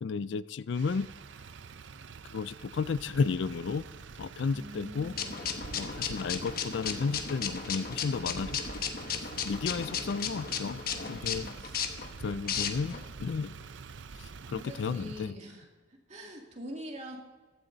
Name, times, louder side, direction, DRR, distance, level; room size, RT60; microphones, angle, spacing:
voice 1, 0.0-1.1 2.3-3.8 4.2-5.1 5.7-8.6 9.4-11.4 12.2-12.9 13.2-13.6 14.2-15.4, left 5 dB, 70° left, 17 dB, 0.4 m, -33 dB
Motor vehicle (road), 0.7-15.3, right 4 dB, 75° right, 0.6 m, -46 dB
voice 2, 4.5-5.4 5.8-6.2 11.6-11.8 12.2-13.1 14.4-15.7 16.1-17.2, equal, 35° right, 0 dB, 2.4 m, -46 dB
sound 1, 5.2-13.0, left 7 dB, 50° left, 1.1 m, -35 dB
15.5 x 12.5 x 4.0 m, 1.3 s
head